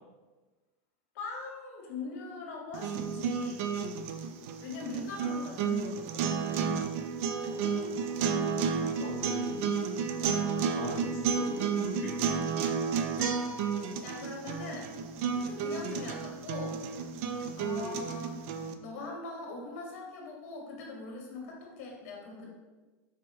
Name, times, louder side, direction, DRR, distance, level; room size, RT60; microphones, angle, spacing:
voice 1, 1.1-3.7 4.6-6.8 9.3-9.4 10.2-10.4 12.9-13.5 14.0-14.9 15.3-16.8 17.6-18.4 18.8-22.5, left 3 dB, 75° left, 0 dB, 1.3 m, -41 dB
sound 1, 2.7-18.7, right 6 dB, 65° right, 0.4 m, -32 dB
voice 2, 7.3-9.8 10.7-12.2, left 1 dB, 50° left, -4 dB, 0.7 m, -42 dB
4.8 x 2.0 x 4.4 m, 1.2 s
supercardioid pair, 125°, 8 cm